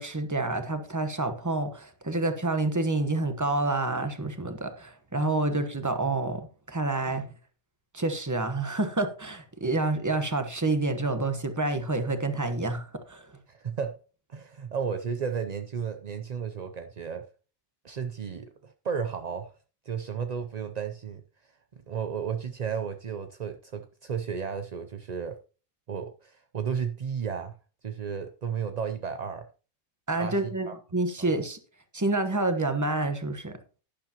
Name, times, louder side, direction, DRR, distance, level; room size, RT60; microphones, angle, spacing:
voice 1, 0.0-7.3 7.9-13.2 30.1-31.6 31.9-33.6, right 2 dB, 15° right, 1.0 m, -28 dB
voice 2, 13.5-14.0 14.3-17.2 17.8-19.5 19.8-21.2 21.9-25.4 25.9-27.6 27.8-29.5 30.2-30.8 31.2-31.3, right 6 dB, 55° right, 0.4 m, -33 dB
11.5 x 9.9 x 2.9 m
omnidirectional pair, 1.5 m